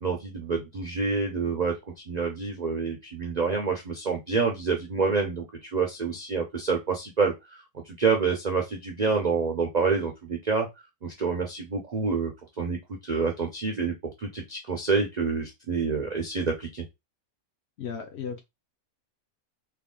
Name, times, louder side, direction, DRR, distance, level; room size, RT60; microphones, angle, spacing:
voice 1, 0.0-10.7 11.0-12.3 12.6-16.8, right 4 dB, 65° right, 0.4 m, -27 dB
voice 2, 17.8-18.4, left 6 dB, 60° left, 0.7 m, -35 dB
3.4 x 2.3 x 3.6 m
omnidirectional pair, 1.6 m